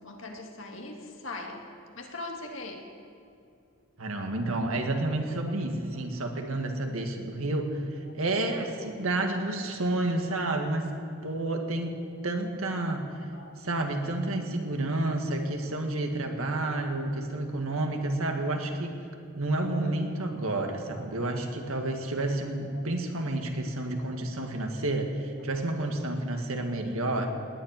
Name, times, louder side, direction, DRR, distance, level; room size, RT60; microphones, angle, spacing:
voice 1, 0.0-1.6 2.0-2.8 8.1-8.2 13.3-13.5 17.0-17.1 22.7-22.8 25.4-25.5 26.4-26.5, left 2 dB, 65° left, 2 dB, 2.0 m, -41 dB
voice 2, 4.0-7.8 8.1-10.9 11.2-12.0 12.2-13.0 13.6-19.0 19.4-27.3, right 2 dB, 80° right, 4 dB, 1.8 m, -30 dB
18.5 x 7.6 x 9.7 m, 2.5 s
head